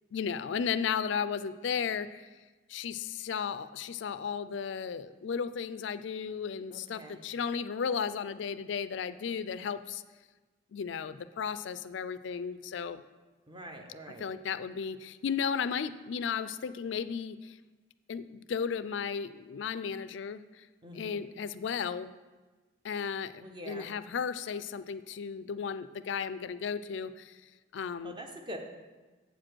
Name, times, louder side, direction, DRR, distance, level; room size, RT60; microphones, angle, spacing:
voice 1, 0.1-2.3 2.7-10.0 10.7-13.0 14.2-17.6 18.1-20.7 20.9-22.1 22.8-23.3 23.7-28.2, left 6 dB, 70° left, 13 dB, 0.4 m, -34 dB
voice 2, 6.7-7.2 13.5-14.2 20.8-21.3 23.4-23.9 28.0-28.6, equal, 25° right, 3 dB, 0.8 m, -44 dB
7.9 x 5.0 x 6.2 m, 1.3 s
head